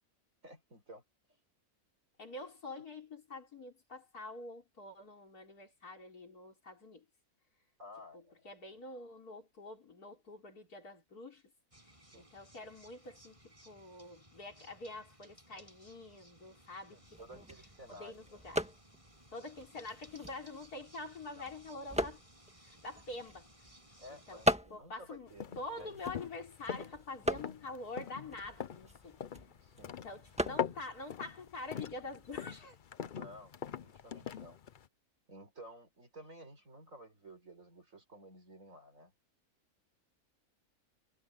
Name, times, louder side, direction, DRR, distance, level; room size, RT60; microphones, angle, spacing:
voice 1, 0.4-1.0 7.8-8.5 12.1-12.3 16.9-18.4 21.4-21.5 24.0-26.0 29.6-29.9 33.1-34.6 35.3-39.1, equal, 60° right, 5.9 m, -53 dB
voice 2, 2.2-7.0 8.1-11.4 12.2-17.5 17.9-18.7 19.3-22.2 22.6-23.5 24.3-24.4 24.7-29.2 29.9-32.8, left 2 dB, 90° left, 4.7 m, -46 dB
sound 1, 11.7-24.6, right 1 dB, 20° right, 7.5 m, -61 dB
sound 2, 17.0-32.6, equal, 5° right, 1.5 m, -41 dB
sound 3, 25.3-34.9, left 8 dB, 50° left, 0.6 m, -43 dB
omnidirectional pair, 1.6 m